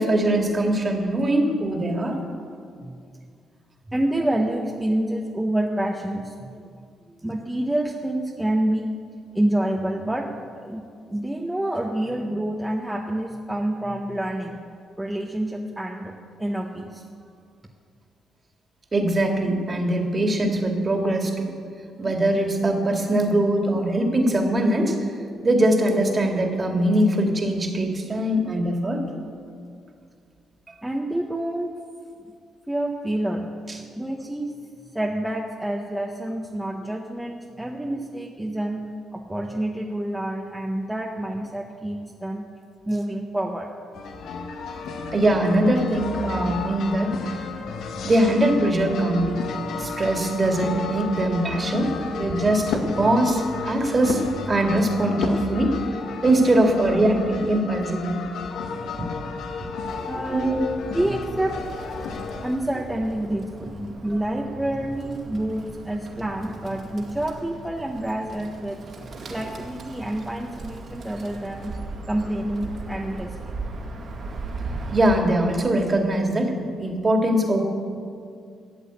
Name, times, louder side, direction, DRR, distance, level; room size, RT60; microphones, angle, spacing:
voice 1, 0.0-2.2 18.9-21.5 22.0-25.0 25.4-29.0 30.7-30.8 45.1-47.4 48.0-49.4 49.7-54.2 54.5-55.8 56.2-58.2 60.3-60.6 74.9-77.6, right 1 dB, 30° right, 2 dB, 2.2 m, -22 dB
voice 2, 3.9-6.6 7.2-8.9 9.3-10.3 10.6-14.6 15.0-16.1 16.4-17.0 30.8-31.7 32.7-33.5 34.0-34.5 34.9-42.4 42.9-43.7 60.0-60.6 60.9-61.9 62.4-71.7 72.1-73.4, right 1 dB, 10° right, 0 dB, 1.0 m, -28 dB
sound 1, 43.9-62.6, left 4 dB, 75° left, 1.4 m, -32 dB
Bird, 59.8-75.2, right 3 dB, 55° right, 2.2 m, -38 dB
13.5 x 8.0 x 8.4 m, 2.3 s
cardioid pair, 90°, 0 cm